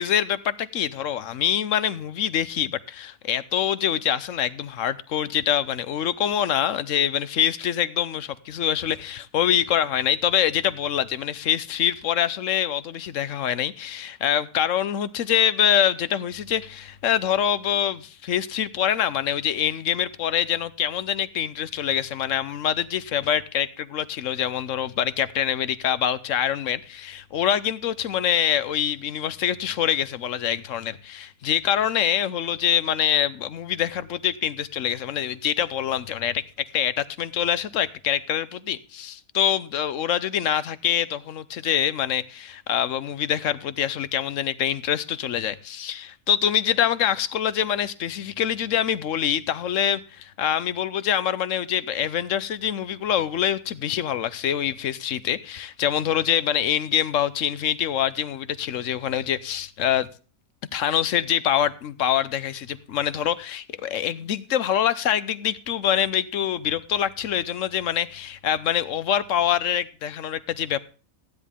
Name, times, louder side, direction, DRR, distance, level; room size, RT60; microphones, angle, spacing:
voice 1, 0.0-60.1 60.7-70.8, left 10 dB, 65° left, 1.1 m, -25 dB
15.5 x 10.0 x 3.6 m
omnidirectional pair, 1.5 m